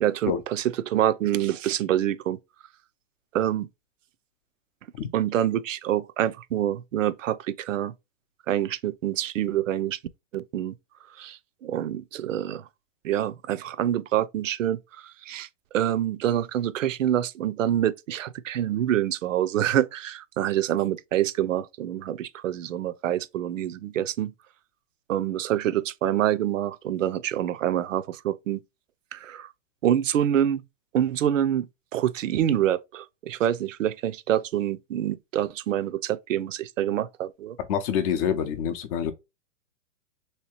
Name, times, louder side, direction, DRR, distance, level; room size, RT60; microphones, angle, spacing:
voice 1, 0.0-2.4 3.3-3.7 5.1-7.9 8.5-10.0 10.3-10.7 11.2-12.6 13.0-15.5 15.7-24.3 25.1-28.6 29.1-29.5 29.8-30.6 30.9-37.6, right 11 dB, 85° right, 0.6 m, -26 dB
voice 2, 37.7-39.1, left 8 dB, 30° left, 0.6 m, -26 dB
3.3 x 2.8 x 2.9 m
hypercardioid pair, 140°, 37 cm